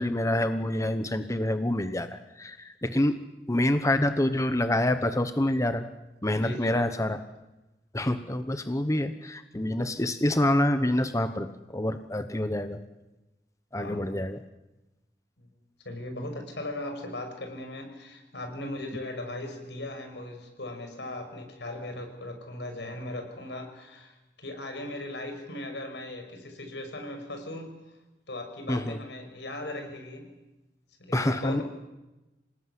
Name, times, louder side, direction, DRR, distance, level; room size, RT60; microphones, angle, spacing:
voice 1, 0.0-3.2 3.5-5.8 6.2-7.2 7.9-12.8 13.7-14.4 28.7-29.0 31.1-31.6, left 1 dB, 20° left, 9 dB, 1.0 m, -27 dB
voice 2, 6.3-7.1 13.8-14.1 15.4-15.5 15.8-24.1 24.4-27.7 28.3-30.3 31.0-31.6, left 1 dB, 75° left, 5 dB, 6.3 m, -38 dB
27.0 x 19.5 x 9.7 m, 1.0 s
head